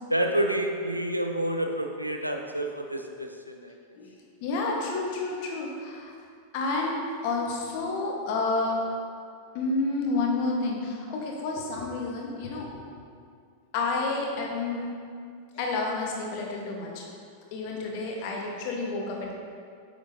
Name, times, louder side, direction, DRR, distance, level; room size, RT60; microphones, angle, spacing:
voice 1, 0.1-3.7, right 1 dB, 90° right, 3 dB, 0.6 m, -28 dB
voice 2, 4.4-6.1 6.5-6.9 7.2-8.8 9.5-12.8 13.7-14.9 15.5-17.0 17.5-19.3, left 3 dB, 45° left, -1 dB, 1.4 m, -30 dB
8.5 x 7.2 x 2.8 m, 2.2 s
figure-of-eight pair, 90°, 0 cm